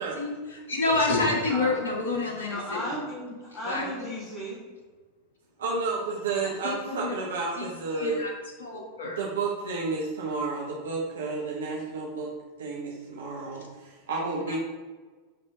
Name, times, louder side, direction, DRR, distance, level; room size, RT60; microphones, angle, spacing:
voice 1, 0.0-2.9 3.6-4.1 6.4-8.3 8.6-9.2 14.5-14.6, left 3 dB, 70° left, 1 dB, 1.5 m, -29 dB
voice 2, 2.4-4.6, equal, 30° left, -7 dB, 2.3 m, -35 dB
voice 3, 5.6-8.2 9.0-12.3 12.6-14.6, right 4 dB, 70° right, -2 dB, 1.0 m, -31 dB
10.0 x 3.6 x 3.9 m, 1.3 s
figure-of-eight pair, 85°, 0 cm